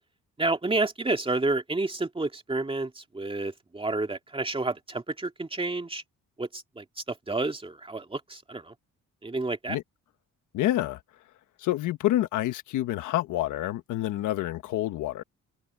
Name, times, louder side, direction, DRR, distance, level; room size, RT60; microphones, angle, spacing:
voice 1, 0.4-6.0 6.4-8.7 9.2-9.8, right 2 dB, 20° right, 2.3 m, -30 dB
voice 2, 10.5-11.0 11.6-15.2, left 14 dB, 90° left, 1.4 m, -28 dB
cardioid pair, 90°, 30 cm